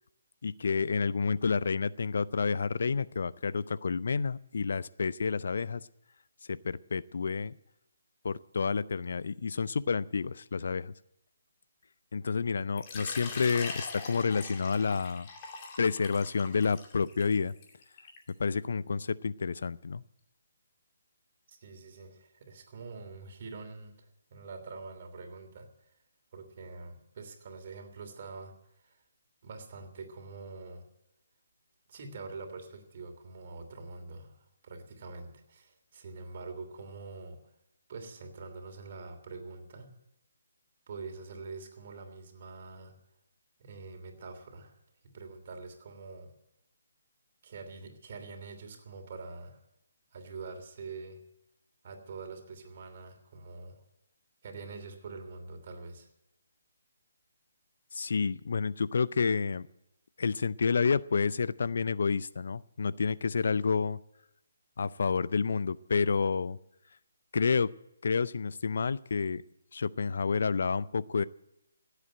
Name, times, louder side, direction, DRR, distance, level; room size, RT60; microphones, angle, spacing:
voice 1, 0.4-5.8 6.5-7.5 8.2-10.9 12.1-15.3 15.8-17.5 18.4-20.0 57.9-59.7 60.2-64.0 64.8-66.6 67.3-67.7 68.0-69.4 69.7-71.2, left 5 dB, 60° left, 18 dB, 0.5 m, -29 dB
Water / Liquid, 12.8-18.3, left 4 dB, 30° left, 2.4 m, -43 dB
voice 2, 21.5-25.7 26.3-29.0 29.4-30.8 31.9-37.4 37.9-39.9 40.9-42.9 43.6-44.7 45.0-46.3 47.4-49.6 50.1-51.2 51.8-53.8 54.4-56.1, right 4 dB, 45° right, 4 dB, 3.0 m, -45 dB
16.0 x 8.3 x 8.9 m, 0.84 s
figure-of-eight pair, 145°, 0 cm